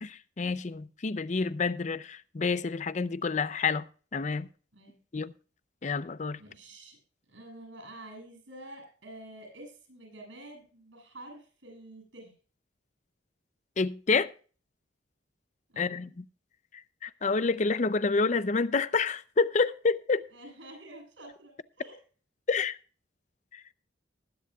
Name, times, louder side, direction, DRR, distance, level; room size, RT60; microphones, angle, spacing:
voice 1, 0.0-3.9 4.1-4.5 5.1-5.3 5.8-6.4 13.8-14.3 15.8-16.2 16.7-20.2 22.5-22.8 23.5-23.6, left 4 dB, 40° left, 0.5 m, -28 dB
voice 2, 6.4-7.0 7.2-12.3 15.7-16.0 20.3-22.0, right 1 dB, 80° right, 7.7 m, -48 dB
20.5 x 10.5 x 2.4 m
head